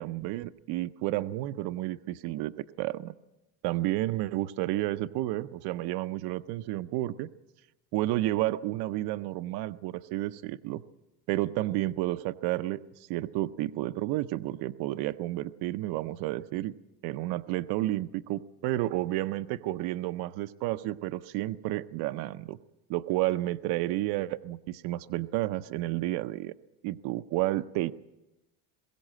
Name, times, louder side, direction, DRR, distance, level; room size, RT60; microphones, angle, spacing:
voice 1, 0.0-3.1 3.6-7.3 7.9-10.8 11.3-16.7 17.0-22.6 22.9-26.5 26.8-27.9, right 16 dB, 60° right, 11 dB, 0.6 m, -31 dB
21.5 x 16.5 x 7.5 m, 1.0 s
cardioid pair, 145°, 44 cm